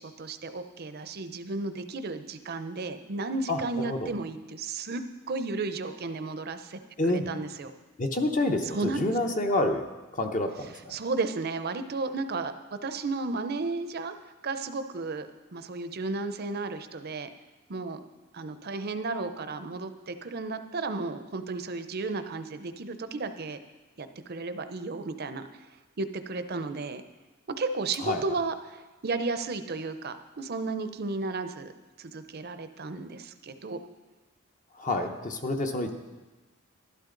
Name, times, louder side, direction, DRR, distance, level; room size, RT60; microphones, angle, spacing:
voice 1, 0.0-6.8 7.1-7.7 8.6-9.1 10.9-12.5 12.8-14.1 14.4-17.3 17.7-18.0 18.3-23.6 24.0-25.4 26.0-27.0 27.6-31.7 32.0-33.8, right 3 dB, 50° right, 10 dB, 0.6 m, -33 dB
voice 2, 3.5-4.1 7.0-7.3 8.0-9.8 10.2-10.7 28.0-28.2 34.8-35.9, left 2 dB, 35° left, 4 dB, 0.8 m, -28 dB
12.0 x 12.0 x 3.9 m, 1.2 s
head